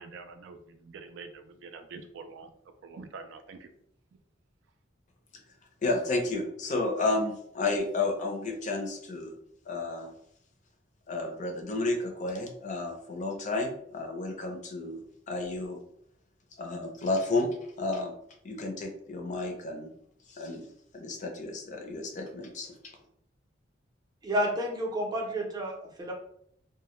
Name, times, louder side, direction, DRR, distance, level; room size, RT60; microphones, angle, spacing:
voice 1, 0.0-2.5 2.8-3.7, right 4 dB, 70° right, 7 dB, 0.3 m, -46 dB
voice 2, 5.8-9.4 9.7-10.1 11.1-15.8 16.6-17.5 17.8-18.1 18.4-19.9 20.3-20.7 20.9-23.0, left 2 dB, 40° left, 2 dB, 0.4 m, -32 dB
voice 3, 24.2-26.1, equal, 20° right, -1 dB, 0.5 m, -30 dB
2.1 x 2.0 x 2.9 m, 0.69 s
head